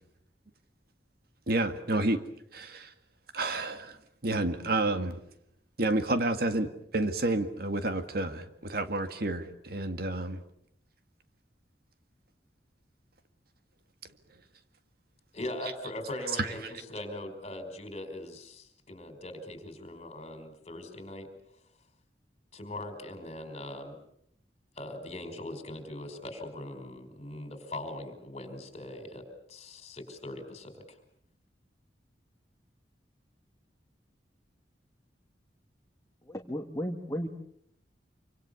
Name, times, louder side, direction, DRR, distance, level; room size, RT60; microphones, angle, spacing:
voice 1, 1.5-2.2 2.5-2.9 3.3-4.0 4.2-5.2 5.8-10.4 16.4-16.7, right 2 dB, 60° right, 8 dB, 1.9 m, -30 dB
voice 2, 15.3-16.6 16.9-21.3 22.5-24.0 24.8-30.8, left 1 dB, 35° left, 7 dB, 5.1 m, -40 dB
voice 3, 36.3-37.3, equal, 20° left, 3 dB, 1.8 m, -34 dB
27.0 x 25.5 x 7.0 m, 0.70 s
head